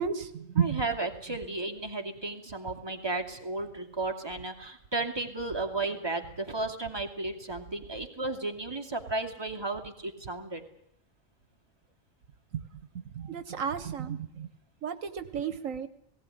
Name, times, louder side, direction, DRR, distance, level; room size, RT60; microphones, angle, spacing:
voice 1, 0.0-0.8 12.5-12.6 13.2-14.5 14.8-15.9, right 7 dB, 80° right, 13 dB, 1.4 m, -32 dB
voice 2, 0.6-10.6, right 2 dB, 20° right, 3 dB, 2.4 m, -34 dB
18.5 x 17.5 x 9.9 m, 0.73 s
omnidirectional pair, 1.4 m